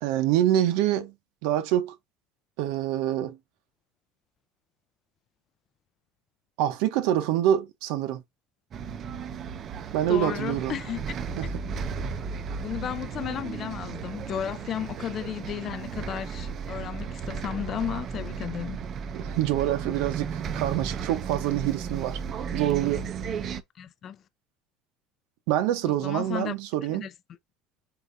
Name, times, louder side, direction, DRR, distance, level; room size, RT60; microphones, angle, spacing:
voice 1, 0.0-1.1 1.4-1.9 2.6-3.4 6.6-8.2 9.9-10.7 11.4-11.5 19.1-22.2 22.5-23.0 25.5-27.1, right 12 dB, 75° right, 0.9 m, -26 dB
Bus, 8.7-23.6, right 6 dB, 40° right, 0.6 m, -34 dB
voice 2, 10.1-11.0 11.4-11.5 12.6-18.8 23.8-24.2 25.8-26.5 26.9-27.1, left 10 dB, 40° left, 0.5 m, -34 dB
4.7 x 3.9 x 2.6 m
cardioid pair, 130°, 0 cm